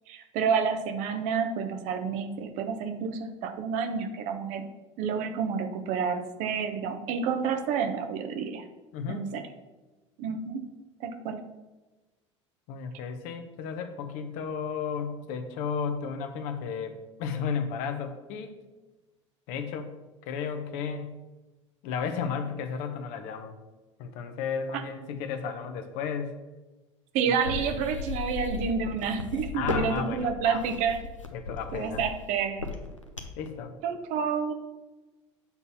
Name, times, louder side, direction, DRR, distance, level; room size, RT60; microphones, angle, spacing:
voice 1, 0.1-4.6 5.0-8.6 9.1-9.4 10.2-10.6 11.0-11.4 24.7-24.8 27.1-31.0 31.7-32.7 33.8-34.5, right 6 dB, 50° right, 8 dB, 0.8 m, -29 dB
voice 2, 8.9-9.3 12.7-18.6 19.5-20.0 20.3-21.2 21.8-23.6 24.0-26.4 27.7-27.8 29.5-30.7 31.3-32.0 33.4-33.7, left 6 dB, 50° left, 7 dB, 0.9 m, -33 dB
sound 1, 27.4-33.5, left 3 dB, 90° left, 0.8 m, -35 dB
7.1 x 4.1 x 5.8 m, 1.2 s
figure-of-eight pair, 70°, 16 cm